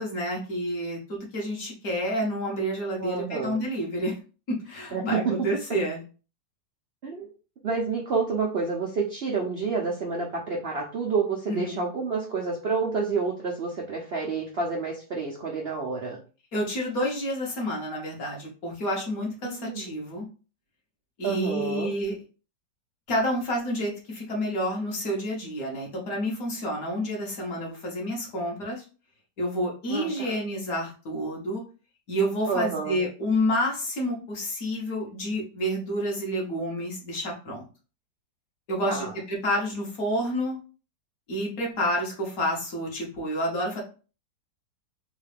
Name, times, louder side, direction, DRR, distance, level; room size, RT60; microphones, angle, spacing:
voice 1, 0.0-4.2 4.5-6.0 11.5-11.8 16.5-20.3 21.2-22.2 23.1-28.8 29.4-31.6 32.1-37.6 38.7-40.6 41.3-43.8, equal, 55° left, -1 dB, 1.5 m, -29 dB
voice 2, 3.0-3.6 4.9-5.3 7.0-7.3 7.6-16.2 19.4-20.0 21.2-21.9 29.9-30.4 32.5-33.0 38.9-39.1, right 4 dB, 90° right, -1 dB, 0.5 m, -29 dB
3.7 x 2.4 x 3.3 m, 0.36 s
omnidirectional pair, 1.9 m